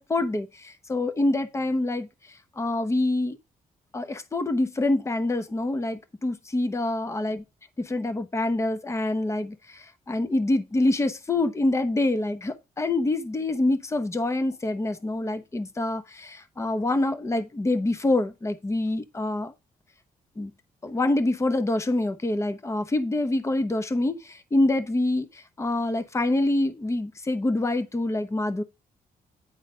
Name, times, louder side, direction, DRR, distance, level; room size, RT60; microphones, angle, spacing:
voice 1, 0.0-2.1 2.6-3.4 3.9-7.4 7.8-19.5 20.4-20.5 20.8-28.6, left 2 dB, 20° left, 0.9 m, -26 dB
9.7 x 3.9 x 5.5 m
cardioid pair, 120°, 15 cm